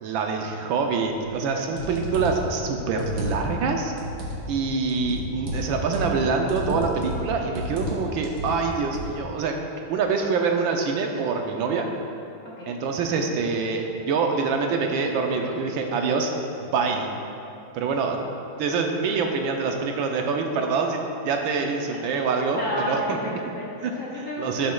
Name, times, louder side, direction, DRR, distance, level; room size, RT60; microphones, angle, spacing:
voice 1, 0.0-3.9 4.5-9.5 9.9-11.9 12.7-16.3 16.6-17.1 17.7-18.2 18.6-23.2 23.8-23.9 24.4-24.7, right 4 dB, 80° right, 3 dB, 1.3 m, -25 dB
sound 1, 1.3-1.4 1.8-2.5 2.9-3.6 4.0-4.4 4.9-6.2 6.5-7.3 7.6-8.0 8.2-9.1, equal, 50° right, 1.5 m, -31 dB
voice 2, 12.4-12.7 22.6-24.7, equal, 60° left, -5 dB, 0.9 m, -31 dB
11.5 x 6.4 x 2.3 m, 2.7 s
omnidirectional pair, 2.2 m